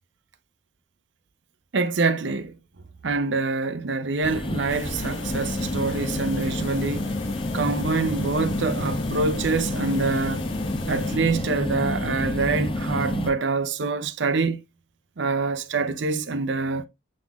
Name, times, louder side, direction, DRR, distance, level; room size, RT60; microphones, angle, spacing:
voice 1, 1.7-2.5 3.0-7.2 7.5-10.5 10.9-14.6 15.2-16.9, right 4 dB, 65° right, 0.6 m, -25 dB
sound 1, 4.2-13.3, left 1 dB, 25° left, 0.7 m, -29 dB
sound 2, 4.7-11.2, left 3 dB, 70° left, 0.9 m, -38 dB
7.4 x 3.9 x 3.5 m
head